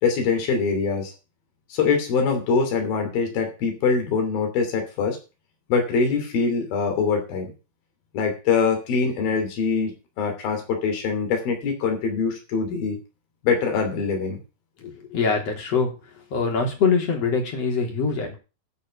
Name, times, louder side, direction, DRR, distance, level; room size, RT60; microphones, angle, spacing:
voice 1, 0.0-1.1 1.7-5.2 5.7-7.5 8.1-13.0 13.4-14.4, left 5 dB, 80° left, 3 dB, 4.8 m, -23 dB
voice 2, 14.8-18.4, left 5 dB, 45° left, 2 dB, 4.2 m, -24 dB
12.5 x 5.9 x 7.0 m, 0.32 s
omnidirectional pair, 4.2 m